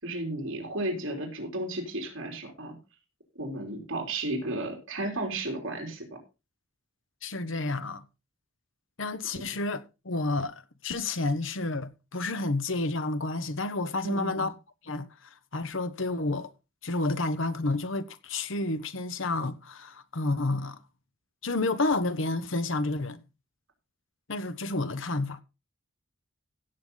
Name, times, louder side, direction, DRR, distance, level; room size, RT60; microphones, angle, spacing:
voice 1, 0.0-2.8 3.4-6.2 14.0-14.5, right 1 dB, 65° right, 3.8 m, -33 dB
voice 2, 7.2-8.0 9.0-14.5 14.8-15.1 15.5-16.5 16.8-20.8 21.4-23.2 24.3-25.4, left 2 dB, 65° left, 1.1 m, -30 dB
16.5 x 6.9 x 3.9 m
head